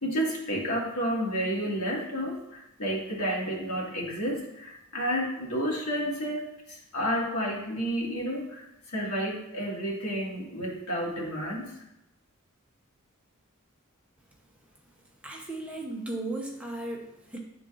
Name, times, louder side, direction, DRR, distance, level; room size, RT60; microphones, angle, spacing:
voice 1, 0.0-11.7, equal, 75° left, -3 dB, 1.8 m, -31 dB
voice 2, 15.2-17.4, right 2 dB, 5° right, -2 dB, 0.8 m, -36 dB
10.5 x 3.8 x 2.5 m, 0.90 s
head